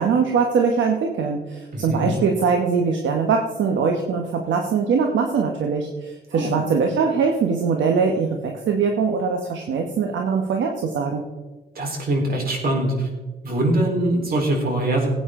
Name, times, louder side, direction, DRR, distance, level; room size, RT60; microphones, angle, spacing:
voice 1, 0.0-11.2, right 5 dB, 70° right, 3 dB, 1.3 m, -22 dB
voice 2, 1.7-2.1 6.3-6.5 11.8-13.1 13.4-15.1, right 1 dB, 50° right, 0 dB, 4.1 m, -22 dB
17.5 x 9.0 x 3.8 m, 1.2 s
cardioid pair, 90°, 20 cm